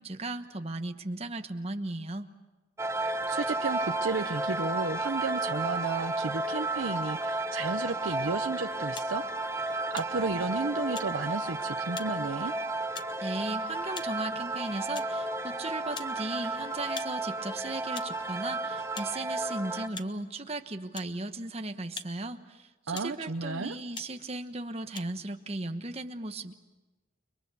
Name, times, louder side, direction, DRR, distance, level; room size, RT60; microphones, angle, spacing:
voice 1, 0.0-2.3 13.2-26.5, right 2 dB, 30° right, 7 dB, 1.2 m, -36 dB
sound 1, 2.8-19.9, right 2 dB, 15° right, 0.9 m, -33 dB
voice 2, 3.0-9.2 9.6-12.5 22.9-23.8, right 3 dB, 85° right, 6 dB, 0.8 m, -33 dB
sound 2, 8.9-9.1 9.9-10.1 10.9-11.1 11.9-12.1 12.9-13.1 13.9-14.1 14.9-15.1 15.9-16.1 16.9-17.1 17.9-18.1 18.9-19.1 19.9-20.1 20.9-21.1 21.9-22.1 22.9-23.1 23.9-24.1 24.9-25.0, left 5 dB, 25° left, 0.9 m, -41 dB
30.0 x 22.5 x 7.0 m, 1.1 s
head